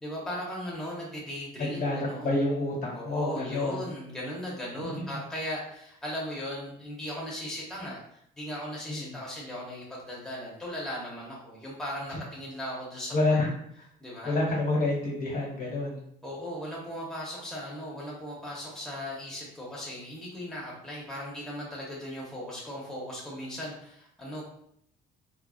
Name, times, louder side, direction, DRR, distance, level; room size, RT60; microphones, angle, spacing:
voice 1, 0.0-2.3 2.9-13.4 14.0-14.3 16.2-24.4, equal, 5° left, -6 dB, 0.7 m, -37 dB
voice 2, 1.6-3.9 4.8-5.2 8.9-9.2 12.1-12.2 13.1-13.5 14.2-16.1, left 2 dB, 55° left, -4 dB, 1.3 m, -28 dB
2.4 x 2.3 x 2.3 m, 0.72 s
cardioid pair, 110°, 17 cm